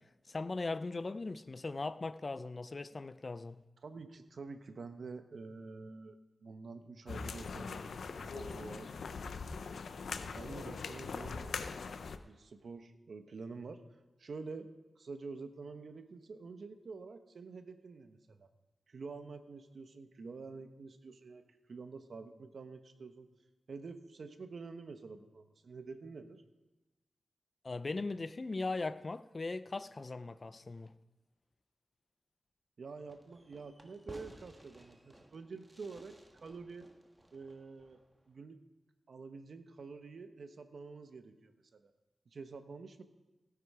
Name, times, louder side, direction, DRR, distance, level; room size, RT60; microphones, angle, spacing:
voice 1, 0.3-3.6 27.6-30.9, left 3 dB, 45° left, 13 dB, 0.6 m, -39 dB
voice 2, 3.8-7.8 8.1-8.9 10.1-11.5 12.2-14.7 15.0-18.5 18.9-23.3 23.7-26.4 32.8-36.9 37.3-38.6 39.1-41.9 42.3-43.0, right 4 dB, 70° right, 8 dB, 1.1 m, -48 dB
sound 1, 7.1-12.2, left 4 dB, 90° left, 0.7 m, -41 dB
Fireworks, 33.1-38.3, right 1 dB, 15° right, 1.5 m, -57 dB
17.0 x 9.8 x 4.9 m, 1.1 s
wide cardioid pair, 75°, 0 cm